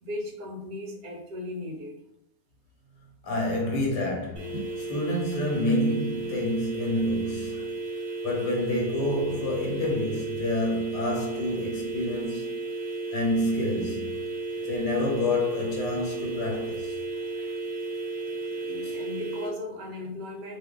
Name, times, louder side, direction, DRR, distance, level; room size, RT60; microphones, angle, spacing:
voice 1, 0.0-2.0 18.3-20.6, left 2 dB, 65° right, 1.1 m, -37 dB
voice 2, 3.2-7.7 8.2-12.5 13.1-14.1 14.6-17.0 18.8-18.9, left 1 dB, 70° left, 1.4 m, -28 dB
sound 1, 4.4-19.5, right 2 dB, 45° right, 1.3 m, -34 dB
3.0 x 2.3 x 3.5 m
omnidirectional pair, 1.9 m